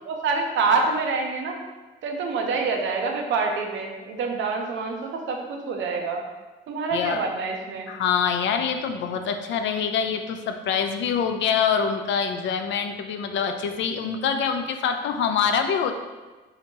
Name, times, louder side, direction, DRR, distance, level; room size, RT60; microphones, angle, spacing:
voice 1, 0.1-1.6 2.0-6.2 6.7-7.9, right 4 dB, 75° right, 2 dB, 0.6 m, -26 dB
voice 2, 7.9-15.9, left 7 dB, 70° left, 6 dB, 0.4 m, -25 dB
3.4 x 2.8 x 2.9 m, 1.2 s
cardioid pair, 90°, 20 cm